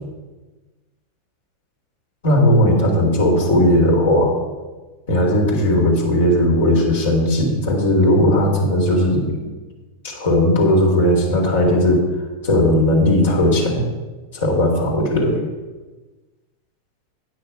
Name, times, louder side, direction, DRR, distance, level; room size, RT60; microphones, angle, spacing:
voice 1, 2.2-4.3 5.1-9.3 10.0-12.1 12.4-13.9 14.3-15.4, left 1 dB, 65° left, -1 dB, 2.1 m, -17 dB
8.9 x 6.1 x 4.7 m, 1.2 s
figure-of-eight pair, 90°, 0 cm